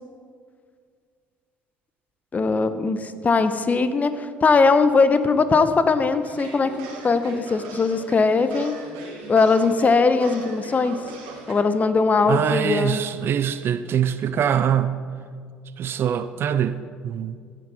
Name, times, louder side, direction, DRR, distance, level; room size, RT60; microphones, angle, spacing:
voice 1, 2.3-8.8 9.3-11.0 11.5-13.0, left 4 dB, 30° left, 11 dB, 0.9 m, -20 dB
sound 1, 6.2-11.5, right 4 dB, 65° right, 2.4 m, -40 dB
voice 2, 12.3-15.0 15.8-17.4, right 9 dB, 45° right, 13 dB, 0.5 m, -23 dB
16.0 x 9.2 x 4.2 m, 2.1 s
figure-of-eight pair, 55°, 5 cm